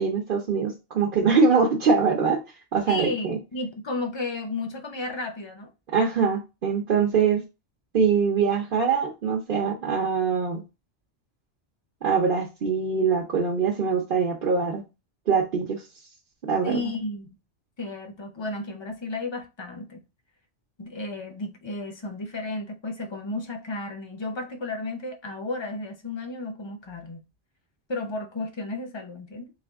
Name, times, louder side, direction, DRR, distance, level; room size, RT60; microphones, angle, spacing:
voice 1, 0.0-2.4 2.7-3.4 5.9-7.4 7.9-10.6 12.0-14.8 15.3-15.8 16.4-16.8, right 5 dB, 55° right, 0.9 m, -23 dB
voice 2, 2.9-5.7 16.6-17.3 17.8-20.0 20.8-27.2 27.9-29.5, left 2 dB, 30° left, 0.6 m, -33 dB
4.1 x 2.3 x 3.4 m
omnidirectional pair, 1.1 m